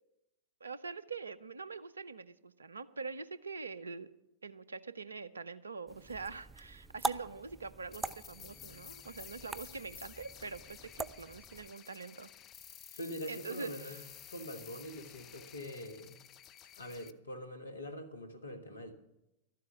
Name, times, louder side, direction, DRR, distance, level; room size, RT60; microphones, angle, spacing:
voice 1, 0.6-4.1 4.4-12.3 12.9-13.0 13.3-14.0, right 4 dB, 75° right, 16 dB, 0.6 m, -44 dB
sound 1, 5.9-11.7, right 3 dB, 10° right, 0.4 m, -43 dB
sound 2, 7.9-17.1, left 11 dB, 35° left, 0.7 m, -53 dB
voice 2, 13.0-14.0 14.3-16.2 16.8-18.9, equal, 75° left, 8 dB, 1.6 m, -44 dB
12.5 x 7.6 x 9.5 m, 0.91 s
figure-of-eight pair, 90°, 0 cm